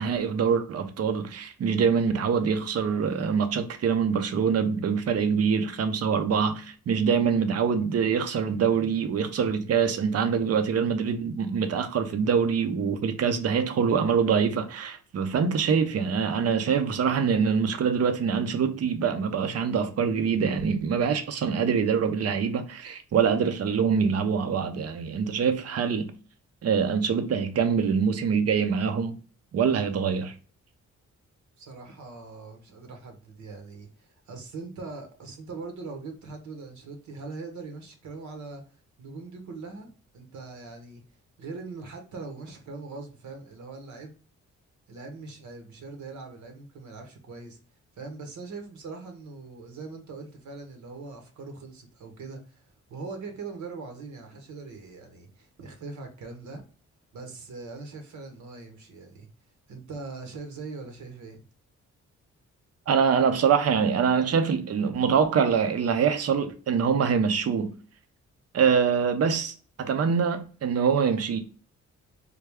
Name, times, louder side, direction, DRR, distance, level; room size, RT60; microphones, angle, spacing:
voice 1, 0.0-26.1 26.6-29.1 29.5-30.3 62.9-67.7 68.5-71.4, right 6 dB, 55° right, 0.6 m, -24 dB
voice 2, 31.6-38.6 39.0-41.0 41.4-44.2 44.9-47.6 48.0-52.6 52.9-56.6 57.1-59.3 59.7-61.4, right 3 dB, 75° right, 1.0 m, -41 dB
3.3 x 2.3 x 3.4 m
cardioid pair, 80°, 30 cm